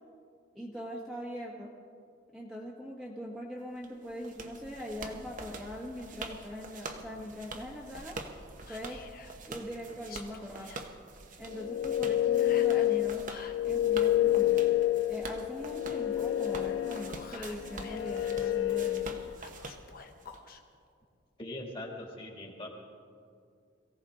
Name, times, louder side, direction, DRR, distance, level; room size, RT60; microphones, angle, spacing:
voice 1, 0.5-1.7 2.3-8.2 8.7-9.0 9.5-10.7 11.4-13.3 13.6-14.6 15.1-19.3, equal, ahead, -5 dB, 1.3 m, -41 dB
sound 1, 3.8-20.4, right 3 dB, 45° right, 1.0 m, -46 dB
Whispering, 8.6-9.4 10.0-10.8 12.4-13.6 16.7-18.5 19.4-20.6, left 5 dB, 50° left, 1.1 m, -50 dB
sound 2, 11.5-19.4, left 13 dB, 80° left, 0.3 m, -29 dB
voice 2, 21.4-22.7, left 1 dB, 30° left, 0 dB, 2.4 m, -41 dB
22.5 x 15.5 x 3.8 m, 2.3 s
head